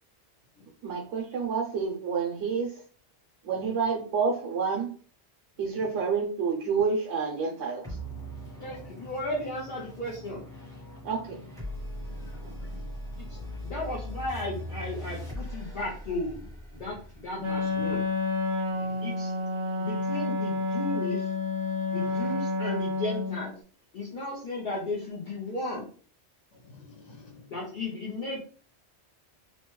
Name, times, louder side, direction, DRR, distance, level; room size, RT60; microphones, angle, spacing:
voice 1, 0.8-2.8 3.4-4.9 5.6-8.0 11.0-11.4 12.4-12.5, right 5 dB, 85° right, 0.9 m, -29 dB
sound 1, 7.8-18.6, equal, 5° left, 0.8 m, -40 dB
voice 2, 8.6-10.4 13.2-18.0 18.7-19.3 19.8-21.3 21.9-23.6 23.9-25.9 27.5-28.4, left 2 dB, 50° left, 0.7 m, -35 dB
voice 3, 12.1-12.9 13.1-13.6 18.7-19.0 20.0-20.1 21.9-22.3 26.5-27.5, left 4 dB, 85° left, 1.4 m, -51 dB
Wind instrument woodwind instrument, 17.4-23.5, left 3 dB, 35° right, 0.5 m, -29 dB
3.0 x 2.2 x 3.0 m
omnidirectional pair, 1.2 m